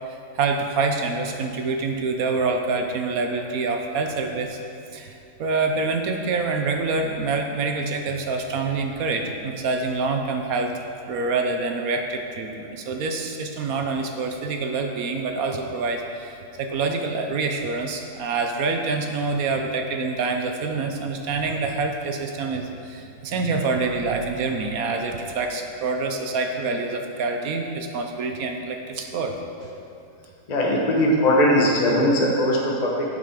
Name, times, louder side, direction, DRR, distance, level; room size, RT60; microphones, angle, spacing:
voice 1, 0.1-4.6 4.9-10.7 11.1-29.3, right 3 dB, 70° right, 4 dB, 1.2 m, -26 dB
voice 2, 30.5-33.0, equal, 30° left, -3 dB, 1.2 m, -20 dB
11.5 x 5.7 x 4.9 m, 2.6 s
omnidirectional pair, 1.6 m